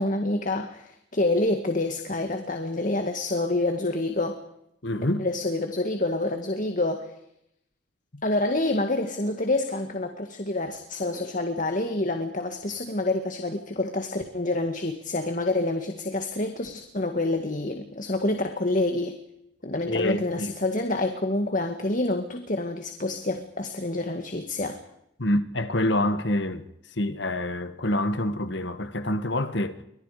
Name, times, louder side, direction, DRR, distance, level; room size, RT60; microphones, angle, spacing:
voice 1, 0.0-4.4 5.2-7.1 8.2-19.2 19.6-24.8, left 2 dB, 40° left, 2.0 m, -27 dB
voice 2, 4.8-5.3 8.1-8.2 19.9-20.5 25.2-26.7 26.9-29.8, left 1 dB, 60° left, 1.9 m, -26 dB
29.5 x 24.5 x 5.1 m
head